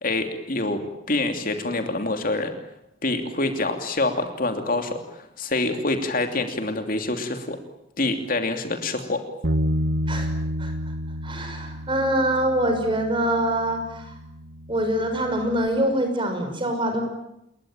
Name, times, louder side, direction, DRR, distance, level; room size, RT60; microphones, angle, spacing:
voice 1, 0.0-0.8 1.1-2.5 3.0-7.6 8.0-9.2, left 2 dB, 45° left, 6 dB, 3.0 m, -26 dB
Bass guitar, 9.4-15.7, equal, 70° right, 1.5 m, -30 dB
voice 2, 11.2-14.1 14.7-17.0, right 1 dB, 25° right, 5 dB, 6.1 m, -24 dB
29.5 x 22.0 x 9.1 m, 0.81 s
head